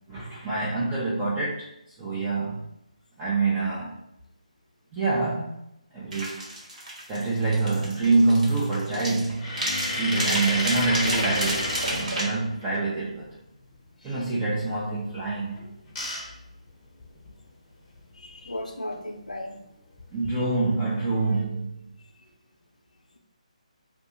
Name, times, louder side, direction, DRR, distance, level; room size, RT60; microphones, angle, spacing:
voice 1, 0.1-1.7 2.0-2.7 3.2-4.0 4.9-5.6 5.9-6.4 7.1-9.5 9.8-13.3 14.0-15.6 20.1-21.7, right 3 dB, 20° right, -8 dB, 0.6 m, -26 dB
sound 1, 6.1-12.2, right 1 dB, 80° right, 1.4 m, -31 dB
sound 2, 9.3-12.8 15.5-17.4 17.9-18.0 18.3-18.5 20.0-20.3 20.9-21.4, left 1 dB, 20° left, 0.8 m, -32 dB
voice 2, 18.2-19.6, left 1 dB, 90° left, 3 dB, 0.5 m, -36 dB
2.8 x 2.3 x 4.2 m, 0.81 s
figure-of-eight pair, 150°, 4 cm